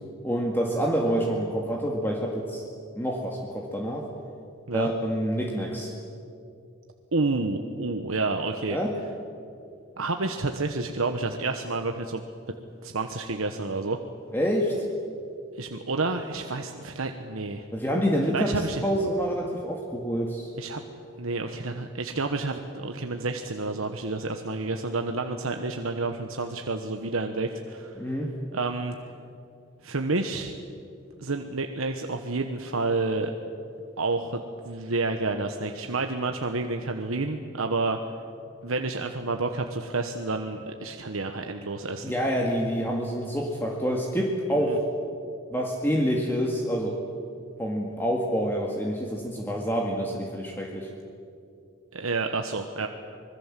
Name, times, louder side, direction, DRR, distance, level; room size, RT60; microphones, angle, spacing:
voice 1, 0.2-2.6 3.0-4.1 4.7-5.9 8.7-8.9 14.3-14.7 17.7-20.5 28.0-28.3 42.0-44.8 45.5-47.0 47.6-50.9, equal, 10° left, -1 dB, 2.0 m, -27 dB
voice 2, 7.1-8.8 10.0-12.2 12.8-14.0 15.6-17.7 18.3-18.8 20.6-20.8 21.2-28.1 28.5-28.9 29.8-30.5 31.2-33.3 34.0-38.0 38.6-42.0 44.5-44.8 51.9-52.9, right 3 dB, 90° right, 5 dB, 1.2 m, -29 dB
25.5 x 21.0 x 7.6 m, 2.5 s
head